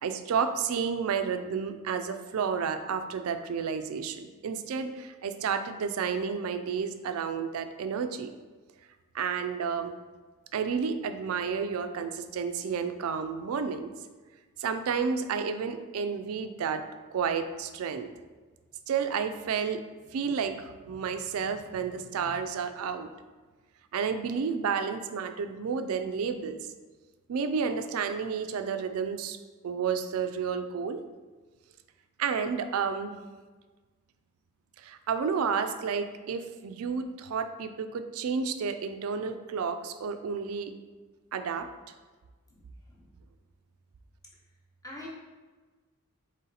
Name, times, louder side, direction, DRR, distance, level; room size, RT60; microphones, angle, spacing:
voice 1, 0.0-8.3 9.1-10.0 10.5-13.9 14.6-16.8 17.1-18.1 18.9-19.8 20.1-23.1 23.9-26.6 27.3-29.4 29.6-31.0 32.2-33.2 34.8-40.7 41.3-41.7, right 6 dB, 70° right, 9 dB, 0.4 m, -31 dB
voice 2, 42.5-42.6 42.9-43.1 44.8-45.1, left 2 dB, 15° left, -4 dB, 0.9 m, -44 dB
4.1 x 3.1 x 3.9 m, 1.3 s
head